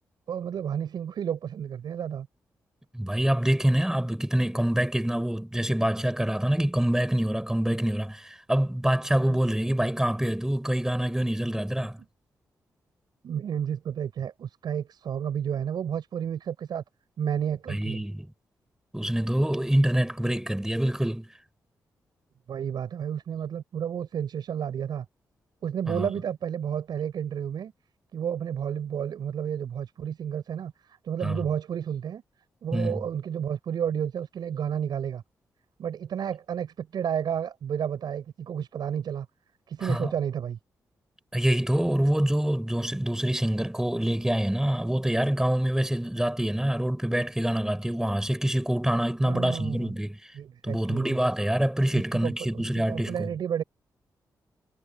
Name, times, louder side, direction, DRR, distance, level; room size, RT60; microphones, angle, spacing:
voice 1, 0.3-2.3 13.2-16.8 17.2-18.0 22.5-25.1 25.6-27.7 28.1-32.2 32.6-35.2 35.8-39.3 39.7-40.6 49.2-50.0 50.4-51.2 51.9-53.6, right 8 dB, 75° right, 7.0 m, -31 dB
voice 2, 2.9-12.0 17.7-18.3 18.9-21.3 25.9-26.1 31.2-31.4 32.7-33.0 39.8-40.1 41.3-50.2 50.6-53.3, right 1 dB, 5° right, 6.7 m, -26 dB
cardioid pair, 55°, 7 cm